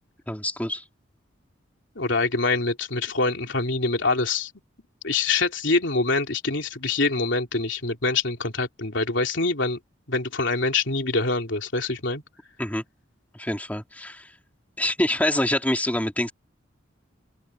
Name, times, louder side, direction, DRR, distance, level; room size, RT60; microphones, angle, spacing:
voice 1, 0.3-0.8 12.6-12.8 13.3-14.3 14.8-16.3, left 1 dB, 10° left, 2.3 m, -26 dB
voice 2, 2.0-4.5 5.0-9.8 10.1-12.2, left 3 dB, 65° left, 3.4 m, -25 dB
open air
head